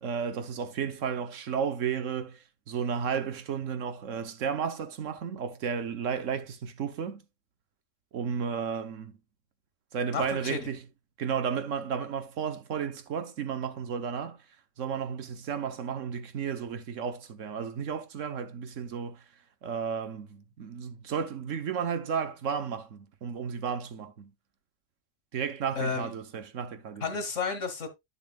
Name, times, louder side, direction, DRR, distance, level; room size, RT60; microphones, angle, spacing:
voice 1, 0.0-7.2 8.1-9.1 9.9-10.8 11.2-14.4 14.8-19.2 19.6-24.3 25.3-27.0, right 7 dB, 80° right, 1.3 m, -33 dB
voice 2, 10.1-10.6 25.8-26.1 27.0-27.9, left 5 dB, 75° left, 2.0 m, -32 dB
10.5 x 7.0 x 2.4 m
omnidirectional pair, 1.3 m